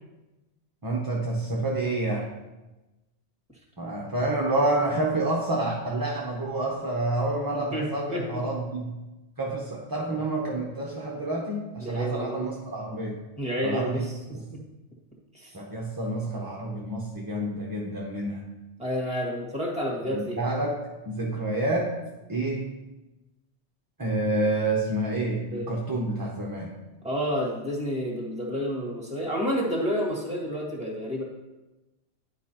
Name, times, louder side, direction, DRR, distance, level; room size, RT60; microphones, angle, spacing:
voice 1, 0.8-2.3 3.8-8.9 9.4-13.2 13.6-14.1 14.3-14.4 15.5-18.4 20.1-20.8 21.1-21.9 22.3-22.7 24.0-26.7, right 2 dB, 25° right, -2 dB, 0.7 m, -28 dB
voice 2, 7.5-8.4 11.8-12.5 13.4-14.6 15.3-15.5 18.8-20.4 25.5-25.7 27.0-31.2, equal, 5° right, -3 dB, 1.6 m, -30 dB
10.5 x 4.9 x 2.9 m, 1.1 s
omnidirectional pair, 1.2 m